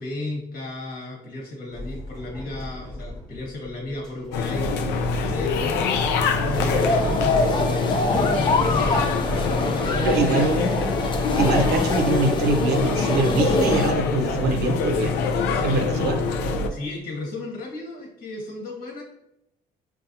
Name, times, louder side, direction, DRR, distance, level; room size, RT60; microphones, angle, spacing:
voice 1, 0.0-5.9 6.4-9.1 9.6-10.6 15.5-16.1 16.7-19.0, left 2 dB, 55° left, 0 dB, 1.4 m, -34 dB
sound 1, 1.7-14.3, left 1 dB, ahead, 0.8 m, -40 dB
sound 2, 4.3-16.7, left 4 dB, 85° left, 0.4 m, -25 dB
sound 3, 6.5-13.9, left 3 dB, 30° left, 0.5 m, -25 dB
voice 2, 10.0-10.8 11.3-15.1 15.6-16.2, right 3 dB, 75° right, 4 dB, 0.5 m, -23 dB
5.4 x 2.3 x 2.7 m, 0.83 s
cardioid pair, 110°, 17 cm